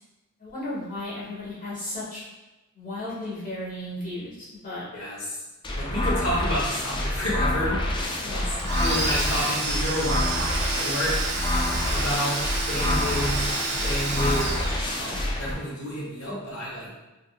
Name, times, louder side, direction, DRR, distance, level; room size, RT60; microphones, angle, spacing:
voice 1, 0.4-2.2 2.7-4.8 8.2-8.6, left 1 dB, 40° left, -7 dB, 1.1 m, -34 dB
voice 2, 4.9-5.4 5.8-7.8 8.3-11.2 11.9-12.4 12.7-13.5 13.8-14.5 14.8-16.9, equal, 70° left, -6 dB, 1.1 m, -30 dB
sound 1, 5.6-15.5, left 1 dB, 20° left, 0.3 m, -27 dB
Domestic sounds home sounds, 8.6-15.4, right 3 dB, 55° right, 0.6 m, -30 dB
3.5 x 2.4 x 2.4 m, 1.1 s
head